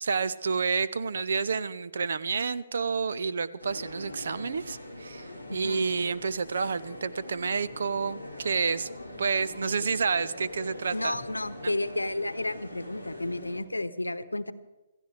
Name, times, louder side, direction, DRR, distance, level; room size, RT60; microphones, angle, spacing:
voice 1, 0.0-8.9 9.2-11.1 11.6-11.7, right 5 dB, 55° right, 16 dB, 0.6 m, -29 dB
sound 1, 3.6-13.6, left 1 dB, 80° right, 4.0 m, -43 dB
voice 2, 5.5-5.8 10.9-14.5, left 2 dB, 80° left, 14 dB, 0.9 m, -32 dB
27.0 x 15.5 x 3.3 m, 1.1 s
figure-of-eight pair, 130°, 0 cm